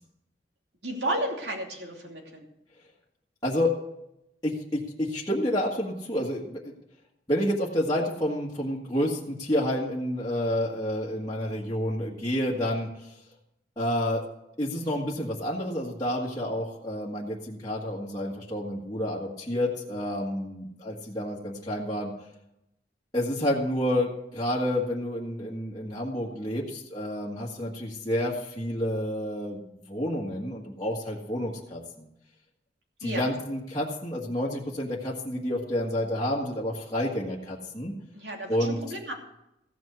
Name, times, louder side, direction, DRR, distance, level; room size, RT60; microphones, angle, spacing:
voice 1, 0.8-2.4 33.0-33.3 38.1-39.1, right 1 dB, 70° right, 1 dB, 2.9 m, -33 dB
voice 2, 3.4-3.7 4.4-6.7 7.3-13.1 13.8-14.2 14.6-22.1 23.1-29.6 29.9-32.1 33.0-37.9 38.5-38.8, left 1 dB, 20° left, -6 dB, 1.6 m, -29 dB
15.5 x 6.2 x 8.0 m, 0.83 s
head